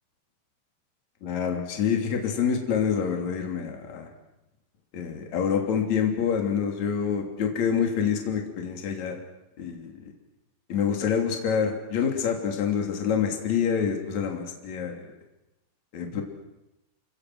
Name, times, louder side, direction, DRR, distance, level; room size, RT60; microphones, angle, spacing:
voice 1, 1.2-4.1 4.9-9.2 9.6-10.1 10.7-15.1 15.9-16.2, left 7 dB, 40° left, 2 dB, 3.7 m, -27 dB
28.5 x 24.5 x 6.3 m, 0.93 s
omnidirectional pair, 6.0 m